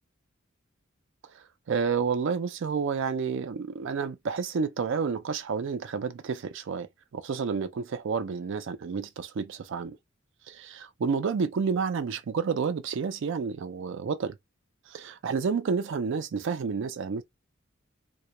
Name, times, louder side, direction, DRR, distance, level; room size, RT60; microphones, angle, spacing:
voice 1, 1.3-10.0 10.5-14.4 14.9-17.2, right 5 dB, 65° right, 0.4 m, -30 dB
2.2 x 2.1 x 2.9 m
head